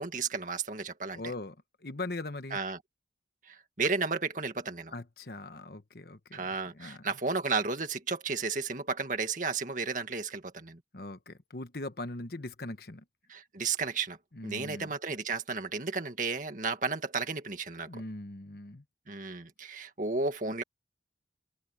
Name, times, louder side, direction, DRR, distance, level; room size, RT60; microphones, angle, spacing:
voice 1, 0.0-1.2 2.5-2.8 3.5-4.9 6.3-10.8 13.3-14.2 14.4-18.0 19.1-20.6, right 4 dB, 45° right, 2.1 m, -33 dB
voice 2, 1.1-2.6 4.9-7.1 10.9-13.0 14.3-14.9 17.9-18.8, left 2 dB, 55° left, 1.3 m, -41 dB
head